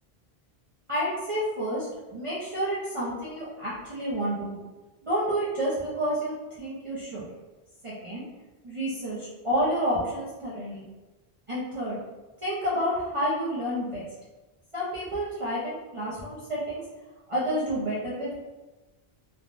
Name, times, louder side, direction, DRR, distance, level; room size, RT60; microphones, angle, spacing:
voice 1, 0.9-4.6 5.0-7.2 7.8-8.2 8.6-10.8 11.5-12.0 12.4-14.1 14.7-16.8 17.3-18.3, equal, 35° right, -8 dB, 0.7 m, -29 dB
3.3 x 2.2 x 2.5 m, 1.1 s
omnidirectional pair, 1.0 m